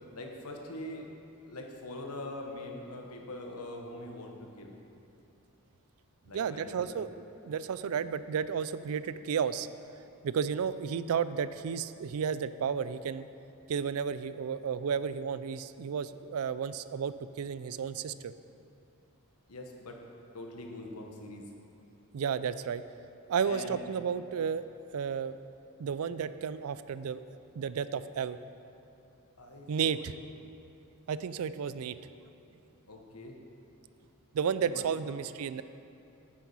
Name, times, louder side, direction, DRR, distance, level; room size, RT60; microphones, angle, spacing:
voice 1, 0.1-1.1 1.4-4.7 6.3-7.0 19.5-20.0 20.3-21.5 23.4-23.8 29.4-30.0 32.9-33.4 34.6-35.2, left 1 dB, 90° left, 2 dB, 1.2 m, -43 dB
voice 2, 6.3-7.1 7.4-9.7 10.2-13.3 13.7-18.3 22.1-22.8 23.3-24.7 24.9-25.3 25.8-27.2 27.6-28.4 29.7-30.1 31.1-31.9 34.3-35.6, right 7 dB, 75° right, 14 dB, 0.4 m, -32 dB
9.3 x 7.5 x 5.5 m, 2.7 s
head